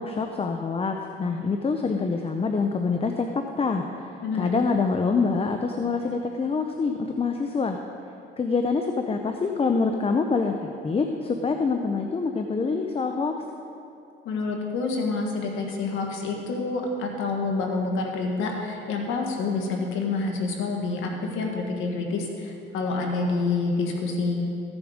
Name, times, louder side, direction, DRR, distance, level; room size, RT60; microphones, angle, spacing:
voice 1, 0.0-3.3 3.6-7.8 8.4-10.5 10.8-13.3, left 4 dB, 30° left, 5 dB, 0.7 m, -26 dB
voice 2, 4.2-4.6 14.2-24.4, left 3 dB, 90° left, 1 dB, 1.7 m, -28 dB
15.0 x 7.1 x 5.1 m, 2.7 s
cardioid pair, 90°, 20 cm